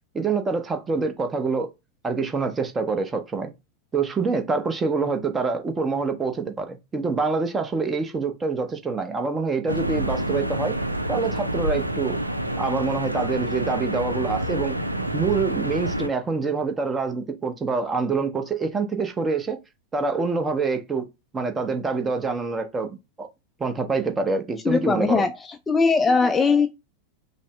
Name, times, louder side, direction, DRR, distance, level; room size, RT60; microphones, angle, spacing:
voice 1, 0.1-1.7 2.0-3.5 3.9-10.8 11.1-12.2 12.6-14.8 15.1-19.6 19.9-21.1 21.3-22.9 23.2-23.3 23.6-25.2, right 4 dB, 15° right, 0.8 m, -26 dB
sound 1, 9.7-16.1, right 1 dB, 85° right, 0.4 m, -28 dB
voice 2, 24.7-25.3 25.7-26.7, left 4 dB, 15° left, 0.4 m, -19 dB
5.3 x 2.0 x 3.2 m
figure-of-eight pair, 90°, 0 cm